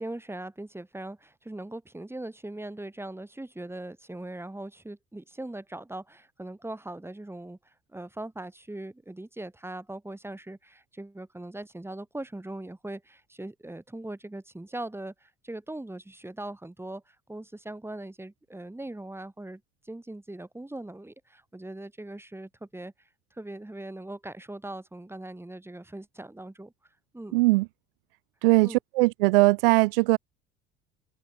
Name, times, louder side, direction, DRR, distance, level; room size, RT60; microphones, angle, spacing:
voice 1, 0.0-22.9 23.3-26.7 27.1-27.4 28.6-28.8, right 1 dB, 10° right, 6.8 m, -40 dB
voice 2, 27.3-27.7 28.4-30.2, right 24 dB, 65° right, 0.9 m, -20 dB
open air
figure-of-eight pair, 60°, 31 cm